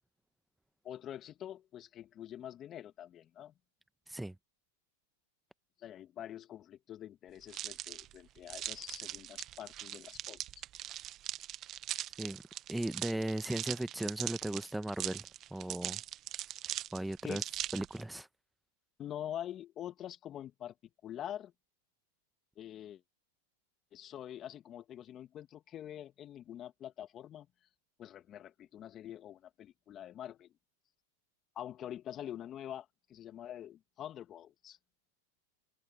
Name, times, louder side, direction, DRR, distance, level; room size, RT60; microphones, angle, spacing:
voice 1, 0.8-3.5 5.8-10.6 17.2-17.4 19.0-20.7 21.0-21.5 22.6-23.0 23.9-27.5 28.0-30.5 31.6-34.8, left 11 dB, 30° left, 2.1 m, -45 dB
sound 1, 7.5-18.0, right 13 dB, 35° right, 1.1 m, -41 dB
voice 2, 12.7-16.0 16.9-17.4 17.7-18.3, right 1 dB, 5° right, 1.2 m, -37 dB
hypercardioid pair, 115°, 0 cm